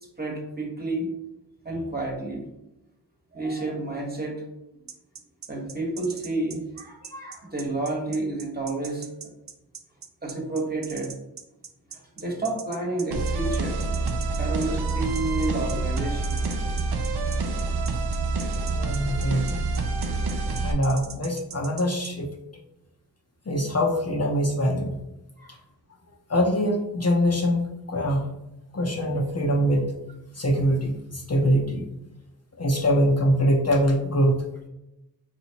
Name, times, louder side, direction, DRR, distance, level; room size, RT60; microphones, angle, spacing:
voice 1, 0.2-1.1 1.6-2.5 3.3-4.4 4.7-4.8 5.5-9.3 10.2-11.1 11.9-13.8 14.4-16.5 25.4-25.6, right 2 dB, 25° right, 0 dB, 1.2 m, -30 dB
sound 1, 4.9-22.1, right 7 dB, 45° right, 0.5 m, -41 dB
sound 2, 13.1-20.7, right 3 dB, 90° right, 0.5 m, -27 dB
voice 2, 18.7-19.6 20.6-22.3 23.5-24.9 26.3-28.3 28.7-29.9 30.3-31.9 32.6-34.3, equal, 40° left, 0 dB, 0.7 m, -23 dB
4.5 x 2.9 x 2.8 m, 0.90 s
cardioid pair, 50°, 39 cm